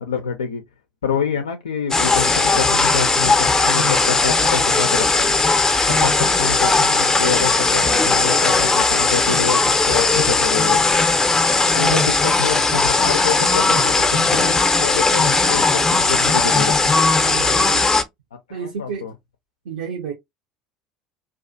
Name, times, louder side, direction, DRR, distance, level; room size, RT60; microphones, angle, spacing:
voice 1, 0.0-0.6 1.0-5.4 5.9-10.8 11.7-16.7 18.5-19.1, left 7 dB, 80° left, 0.3 m, -27 dB
sound 1, 1.9-18.0, left 3 dB, 15° left, 0.5 m, -17 dB
voice 2, 17.2-17.8 18.5-19.1 19.7-20.1, right 7 dB, 70° right, 0.6 m, -31 dB
2.4 x 2.4 x 2.5 m
figure-of-eight pair, 65°, 3 cm